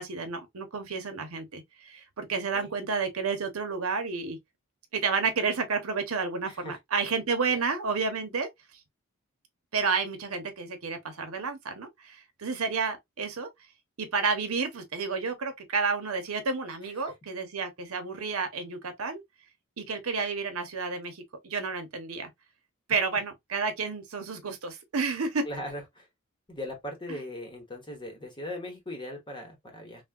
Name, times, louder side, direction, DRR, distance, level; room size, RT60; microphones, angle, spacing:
voice 1, 0.0-4.4 5.0-8.5 9.7-13.5 14.0-19.2 19.8-22.3 22.9-25.4, right 4 dB, 90° right, 0.8 m, -31 dB
voice 2, 2.3-2.7 6.5-6.8 7.5-7.6 16.8-17.1 22.9-23.0 25.4-26.1 26.5-30.0, left 1 dB, 25° left, 0.9 m, -39 dB
3.3 x 2.2 x 2.3 m
head